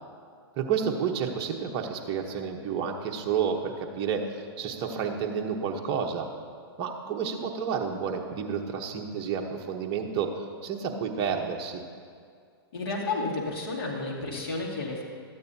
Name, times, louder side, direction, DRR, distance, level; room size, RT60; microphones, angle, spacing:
voice 1, 0.6-4.3 4.6-6.3 6.8-10.3 10.6-11.8, right 7 dB, 35° right, 2 dB, 1.0 m, -30 dB
voice 2, 12.7-15.0, left 3 dB, 70° left, -4 dB, 2.2 m, -31 dB
13.0 x 9.0 x 2.8 m, 2.2 s
hypercardioid pair, 130°, 13 cm